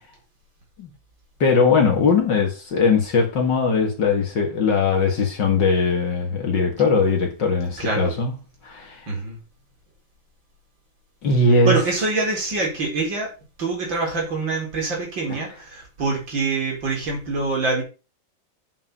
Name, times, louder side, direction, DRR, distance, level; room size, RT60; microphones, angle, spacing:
voice 1, 1.4-8.4 8.6-9.1 11.2-11.8 15.3-15.4, left 4 dB, 65° left, 2.3 m, -20 dB
voice 2, 7.8-8.1 9.1-9.4 11.6-13.3 13.6-17.8, right 3 dB, 70° right, 5.0 m, -25 dB
8.6 x 7.8 x 5.5 m
omnidirectional pair, 2.1 m